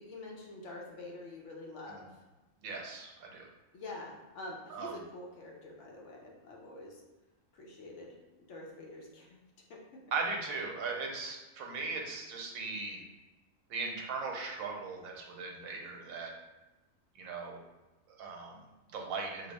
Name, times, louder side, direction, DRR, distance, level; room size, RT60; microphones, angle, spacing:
voice 1, 0.0-2.1 3.7-7.0 7.5-8.1 8.5-9.4 9.7-10.0, left 2 dB, 65° left, -1 dB, 0.9 m, -46 dB
voice 2, 2.6-3.5 4.7-5.0 10.1-13.0 13.7-16.3 17.1-17.6 18.1-19.5, right 4 dB, 85° right, 0 dB, 1.1 m, -38 dB
2.9 x 2.0 x 3.9 m, 1.1 s
omnidirectional pair, 1.4 m